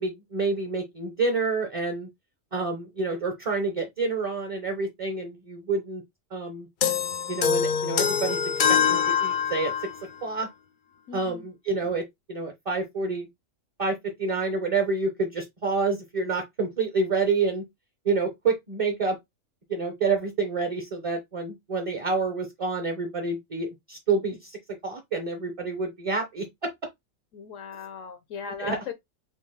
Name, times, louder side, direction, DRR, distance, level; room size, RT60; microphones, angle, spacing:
voice 1, 0.0-2.1 2.5-6.0 6.3-6.7 7.3-8.4 8.7-9.7 10.2-10.5 11.1-13.3 13.8-17.6 18.0-19.2 19.7-24.5 24.8-26.7 28.6-28.8, right 4 dB, 30° right, 0.7 m, -28 dB
sound 1, 6.8-10.0, left 7 dB, 55° left, 0.6 m, -24 dB
voice 2, 11.1-11.5 27.3-28.9, left 5 dB, 75° left, 0.9 m, -37 dB
4.1 x 2.2 x 3.7 m
omnidirectional pair, 1.4 m